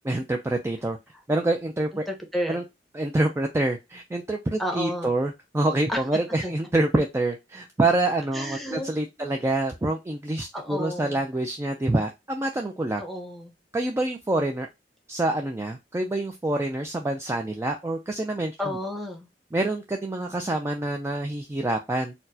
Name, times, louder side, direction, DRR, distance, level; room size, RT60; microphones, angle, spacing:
voice 1, 0.0-1.0 1.3-2.0 2.5-2.6 2.9-13.0 13.7-14.7 15.1-18.5 19.5-22.1, right 2 dB, 15° right, 3 dB, 0.3 m, -26 dB
voice 2, 1.9-2.6 4.6-5.1 5.9-6.0 6.4-6.5 8.3-8.9 9.2-9.3 10.5-11.2 13.0-13.5 18.6-19.3, equal, ahead, 2 dB, 0.8 m, -31 dB
4.3 x 2.1 x 2.7 m, 0.22 s
head